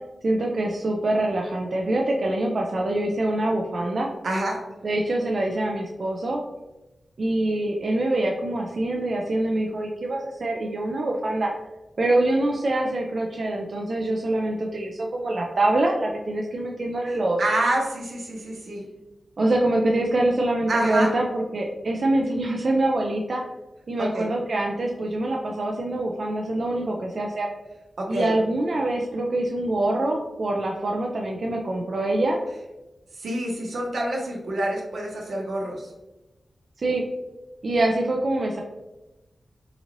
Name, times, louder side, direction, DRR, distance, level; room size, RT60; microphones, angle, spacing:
voice 1, 0.2-4.1 4.8-6.4 7.2-11.5 12.0-17.4 19.4-23.4 23.9-27.5 28.1-32.4 36.8-37.0 37.6-38.6, right 1 dB, 55° right, 0 dB, 0.4 m, -25 dB
voice 2, 4.2-4.6 17.4-18.8 20.7-21.1 24.0-24.3 28.0-28.3 33.2-35.9, right 1 dB, 85° right, -1 dB, 0.9 m, -27 dB
3.8 x 2.6 x 3.0 m, 1.0 s
wide cardioid pair, 115°, 0 cm